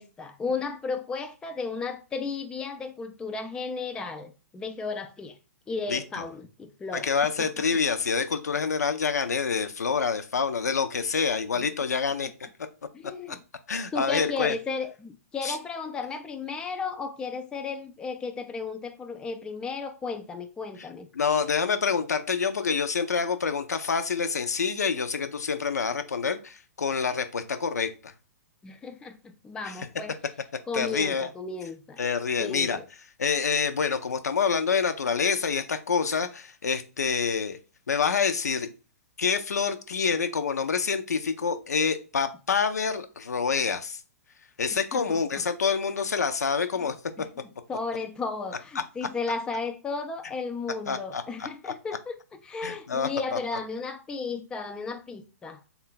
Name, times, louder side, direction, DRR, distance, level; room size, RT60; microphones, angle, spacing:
voice 1, 0.0-5.4 5.7-7.1 7.4-7.5 12.9-13.4 13.9-21.1 28.6-30.1 30.7-32.0 32.4-32.8 44.9-45.4 46.8-46.9 47.2-47.3 47.7-52.1 52.4-55.6, left 4 dB, 10° left, 0.3 m, -34 dB
voice 2, 5.9-6.3 6.9-12.3 13.3-13.4 13.7-14.6 15.4-15.6 20.8-20.9 21.1-28.1 29.6-29.9 30.7-31.3 32.0-32.8 33.2-37.6 37.9-38.7 39.2-44.0 44.6-47.0 50.9-51.7 52.6-53.4, left 5 dB, 80° left, 0.5 m, -27 dB
3.8 x 2.3 x 3.7 m
figure-of-eight pair, 120°, 9 cm